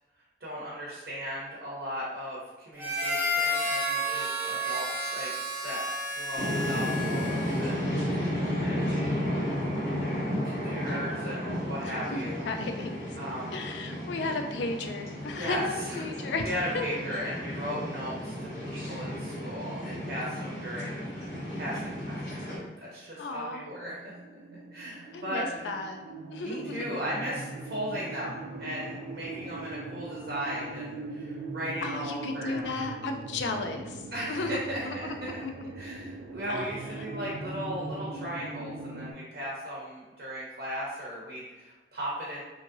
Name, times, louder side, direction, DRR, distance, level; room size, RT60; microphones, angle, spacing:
voice 1, 0.4-5.3 5.6-5.8 6.2-7.9 8.6-9.0 10.4-12.5 13.2-13.5 15.3-16.0 16.4-22.2 22.8-24.1 24.7-25.7 26.4-32.7 34.1-35.4 35.8-42.4, equal, 65° right, -6 dB, 0.7 m, -37 dB
Harmonica, 2.8-7.8, equal, 10° right, 0.4 m, -31 dB
sound 1, 6.4-22.6, equal, 55° left, 0.9 m, -33 dB
voice 2, 11.8-13.2 13.5-16.5 16.7-17.3 23.2-23.6 25.1-26.0 26.3-26.9 31.8-35.7 36.5-36.6, left 3 dB, 90° left, 6 dB, 0.4 m, -34 dB
sound 2, 22.8-39.1, right 2 dB, 85° right, 0.3 m, -41 dB
2.9 x 2.6 x 2.6 m, 1.2 s
head